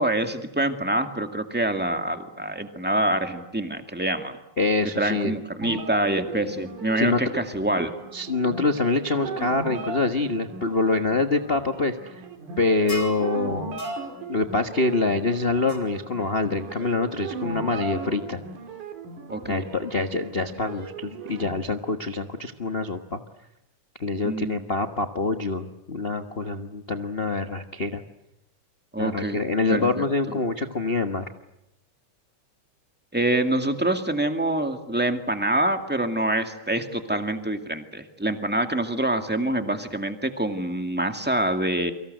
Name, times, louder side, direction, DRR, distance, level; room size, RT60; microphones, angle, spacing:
voice 1, 0.0-4.4 5.0-7.9 19.3-19.6 24.2-24.7 28.9-29.4 29.7-30.0 33.1-41.9, right 1 dB, 5° right, 6 dB, 1.6 m, -26 dB
voice 2, 4.6-5.3 7.0-7.2 8.1-12.2 12.6-13.7 14.3-18.4 19.5-23.2 24.0-28.0 29.0-31.3, left 3 dB, 85° left, 6 dB, 0.5 m, -25 dB
sound 1, 5.6-21.5, right 3 dB, 85° right, 4.8 m, -37 dB
sound 2, 12.9-13.2 13.8-14.0 15.7-15.8, equal, 25° left, 6.3 m, -35 dB
29.0 x 25.0 x 7.9 m, 0.87 s
omnidirectional pair, 3.5 m